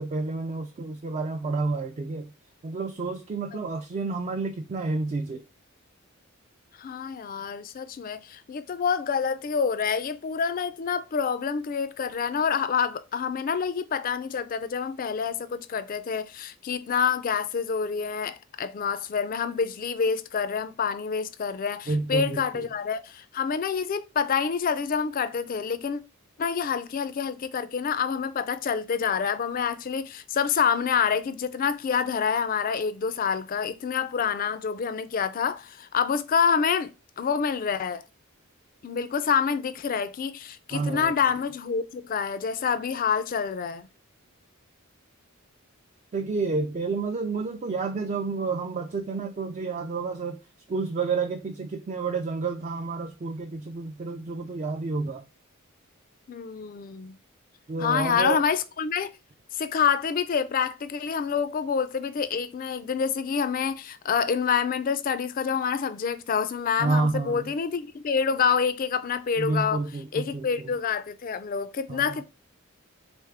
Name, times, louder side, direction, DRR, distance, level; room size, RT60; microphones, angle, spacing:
voice 1, 0.0-2.3 2.6-5.4 21.9-22.7 40.7-41.1 46.1-50.4 50.7-55.2 57.7-58.4 66.8-67.4 69.4-70.7 71.9-72.2, right 3 dB, 35° right, 0.3 m, -30 dB
voice 2, 6.8-26.0 26.4-36.9 37.2-38.0 38.8-43.9 56.3-57.2 57.8-59.1 59.5-69.8 70.1-72.2, left 6 dB, 40° left, 0.3 m, -27 dB
3.5 x 3.4 x 3.3 m
head